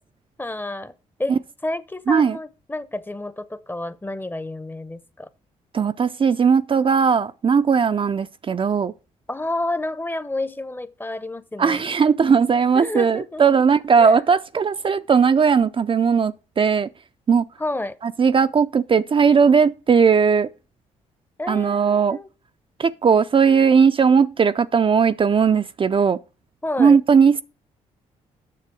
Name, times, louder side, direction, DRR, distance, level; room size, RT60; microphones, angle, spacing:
voice 1, 0.4-0.9 1.2-5.3 9.3-11.8 12.7-13.6 14.0-14.2 17.6-18.0 21.4-22.3 26.6-27.0, left 2 dB, 15° left, 0.7 m, -30 dB
voice 2, 5.7-8.9 11.6-16.9 17.3-17.4 18.2-20.5 21.5-22.2 22.8-26.2 26.8-27.4, right 6 dB, 35° right, 0.5 m, -18 dB
7.7 x 6.6 x 4.8 m
supercardioid pair, 55°, 15 cm